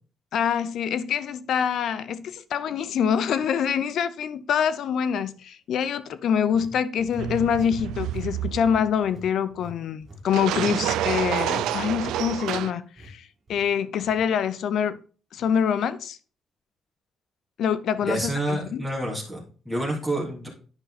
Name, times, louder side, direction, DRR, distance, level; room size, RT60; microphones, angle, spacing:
voice 1, 0.3-13.2 13.5-15.0 15.3-16.2 17.6-18.8, left 8 dB, 70° left, 0.6 m, -25 dB
sound 1, 2.1-2.2 2.8-3.0 6.5-7.8 8.0-8.3 8.5-12.6 13.0-13.1 13.5-13.7 14.0-14.2, equal, 35° right, 2.4 m, -46 dB
sound 2, 7.2-8.9 10.3-12.7, right 12 dB, 90° right, 0.4 m, -28 dB
voice 2, 18.0-20.5, right 1 dB, 5° left, 3.2 m, -28 dB
9.8 x 5.4 x 4.2 m
cardioid pair, 90°, 0 cm